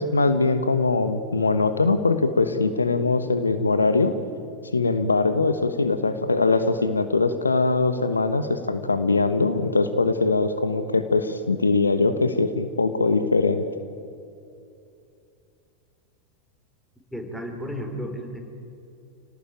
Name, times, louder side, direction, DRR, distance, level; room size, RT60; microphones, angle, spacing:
voice 1, 0.0-4.1 4.7-13.6, left 3 dB, 80° left, 10 dB, 1.2 m, -22 dB
voice 2, 17.1-18.4, equal, ahead, 2 dB, 4.6 m, -33 dB
28.0 x 18.5 x 9.2 m, 2.6 s
figure-of-eight pair, 85°, 0 cm